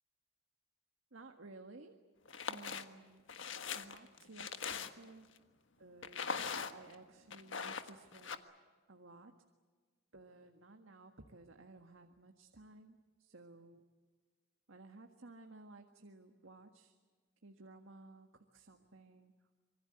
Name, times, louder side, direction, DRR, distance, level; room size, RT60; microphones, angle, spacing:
voice 1, 1.1-2.0 2.5-3.2 3.7-5.3 5.8-8.4 8.9-9.3 10.1-13.8 14.7-17.0 17.4-19.3, right 2 dB, 90° right, 5 dB, 1.7 m, -56 dB
sound 1, 2.3-2.8 3.3-5.2 6.0-6.9 7.3-8.4, left 6 dB, 75° left, 1.5 m, -41 dB
26.5 x 23.5 x 7.9 m, 1.5 s
head